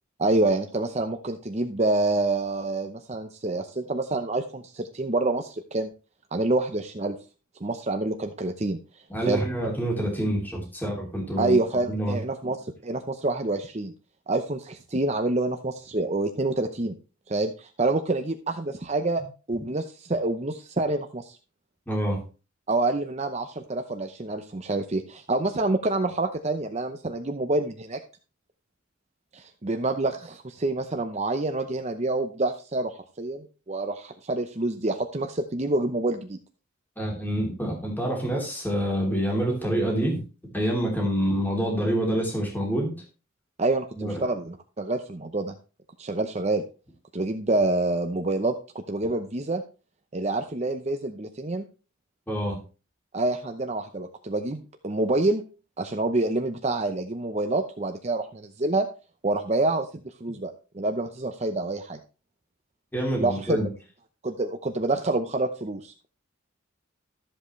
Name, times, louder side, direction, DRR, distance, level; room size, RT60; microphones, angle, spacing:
voice 1, 0.2-5.9 6.3-7.2 7.6-8.8 9.2-9.4 11.4-13.9 14.3-17.0 17.3-19.2 19.5-21.4 22.7-28.0 29.3-36.4 43.6-45.5 46.0-46.6 47.1-48.5 48.9-49.6 50.1-51.6 53.1-55.4 55.8-58.9 59.2-62.0 63.2-63.6 64.2-66.1, right 2 dB, 30° right, 6 dB, 0.7 m, -27 dB
voice 2, 9.1-11.5 11.9-12.2 21.9-22.2 37.0-40.2 40.5-42.9 43.9-44.2 52.3-52.6 62.9-63.7, right 1 dB, 10° left, -2 dB, 3.1 m, -27 dB
13.5 x 7.8 x 3.2 m, 0.33 s
head